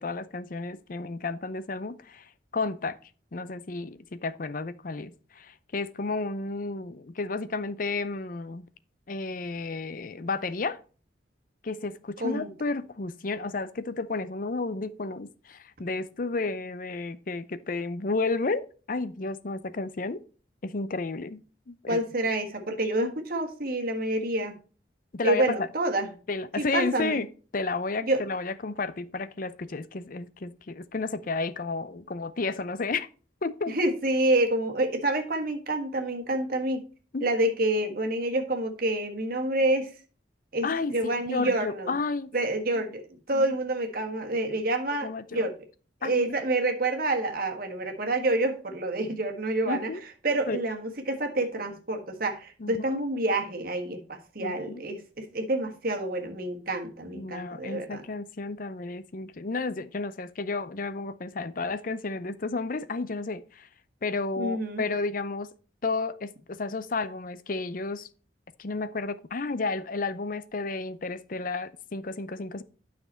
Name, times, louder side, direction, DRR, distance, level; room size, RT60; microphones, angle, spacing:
voice 1, 0.0-3.0 3.3-8.7 9.1-10.8 11.6-20.2 20.6-22.0 25.1-25.7 26.3-27.3 27.5-33.1 33.4-33.7 37.1-37.2 40.6-42.3 42.7-42.8 43.3-43.5 45.0-45.5 46.0-46.3 49.6-50.0 50.5-50.6 52.6-53.0 54.4-54.9 57.1-63.7 64.0-65.5 65.8-68.1 68.6-72.6, left 3 dB, 50° left, 0.6 m, -32 dB
voice 2, 12.2-12.5 21.9-24.6 25.2-26.1 26.6-27.2 28.0-28.2 33.7-36.8 37.2-39.9 40.5-41.9 42.3-45.5 46.0-49.9 50.2-58.0 64.4-64.8, right 2 dB, 50° right, 1.6 m, -28 dB
9.5 x 6.0 x 4.3 m
head